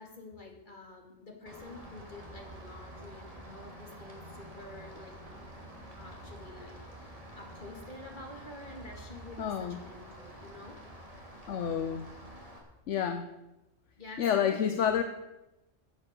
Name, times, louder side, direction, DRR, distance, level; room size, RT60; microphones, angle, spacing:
voice 1, 0.0-5.2 6.0-10.8 14.0-15.0, left 2 dB, 40° left, 2 dB, 2.6 m, -48 dB
Rain, 1.5-12.6, right 1 dB, 25° right, 2.9 m, -48 dB
voice 2, 9.4-9.8 11.5-12.1 12.9-13.3 14.2-15.0, left 8 dB, 70° left, 8 dB, 1.1 m, -29 dB
15.0 x 8.5 x 6.8 m, 0.96 s
omnidirectional pair, 1.3 m